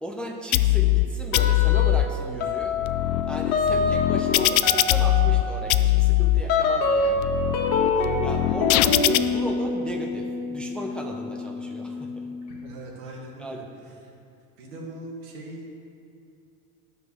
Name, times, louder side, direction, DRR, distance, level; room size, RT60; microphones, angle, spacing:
voice 1, 0.0-2.8 3.2-7.3 8.2-12.3 13.4-13.9, equal, ahead, 1 dB, 0.6 m, -35 dB
sound 1, 0.5-1.0 1.3-2.0 2.6-5.4 5.7-6.4 7.0-9.2, left 16 dB, 80° left, 0.5 m, -21 dB
sound 2, 1.3-2.1 2.4-12.7, left 3 dB, 55° left, 1.8 m, -27 dB
voice 2, 7.9-8.2 12.6-14.1 14.6-15.7, right 1 dB, 80° right, -1 dB, 2.0 m, -41 dB
9.4 x 5.4 x 6.3 m, 2.5 s
supercardioid pair, 115°, 40 cm